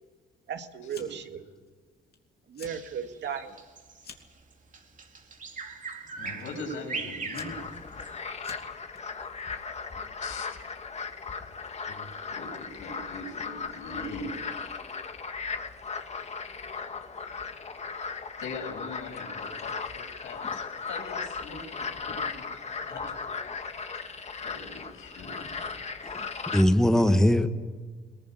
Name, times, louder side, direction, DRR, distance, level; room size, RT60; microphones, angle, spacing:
voice 1, 0.5-1.4 2.5-3.6, right 7 dB, 60° right, 6 dB, 2.1 m, -35 dB
Fire, 0.9-1.4 1.7-2.2 2.5-2.8 3.2-4.4 5.2-5.5 6.4-6.5 7.0-9.0, left 6 dB, 55° left, 2.8 m, -49 dB
Bird vocalization bird call bird song, 2.6-8.2, right 4 dB, 40° right, 2.4 m, -40 dB
voice 2, 6.2-7.7 10.2-10.6 11.9-12.1 12.4-14.8 18.4-22.4 22.9-23.1 23.4-23.6 24.4-25.6, left 3 dB, 85° left, 1 dB, 6.9 m, -41 dB
sound 1, 7.3-26.6, left 5 dB, 35° left, 1.7 m, -37 dB
voice 3, 26.0-27.5, left 1 dB, 5° left, 7 dB, 1.4 m, -22 dB
21.5 x 18.5 x 9.4 m, 1.5 s
cardioid pair, 90°, 20 cm